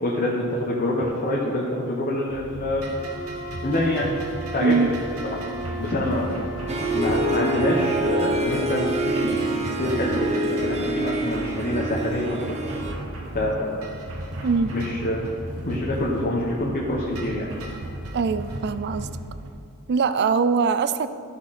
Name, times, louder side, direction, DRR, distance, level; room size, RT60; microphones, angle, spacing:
voice 1, 0.0-2.9 3.6-4.1 4.5-5.4 5.8-6.4 6.9-9.4 9.8-12.5 13.3-13.9 14.7-15.3 15.6-17.5, left 1 dB, 40° left, -4 dB, 1.2 m, -26 dB
sound 1, 2.3-19.5, right 1 dB, 70° right, 1.4 m, -35 dB
Wind instrument woodwind instrument, 2.9-7.6, right 2 dB, 80° left, 2.3 m, -36 dB
voice 2, 4.6-4.9 14.4-14.7 18.1-19.1 19.9-21.1, right 5 dB, 50° right, 13 dB, 0.4 m, -22 dB
Harp, 6.7-12.9, right 1 dB, 30° right, 0.9 m, -26 dB
14.0 x 6.2 x 4.2 m, 2.4 s
head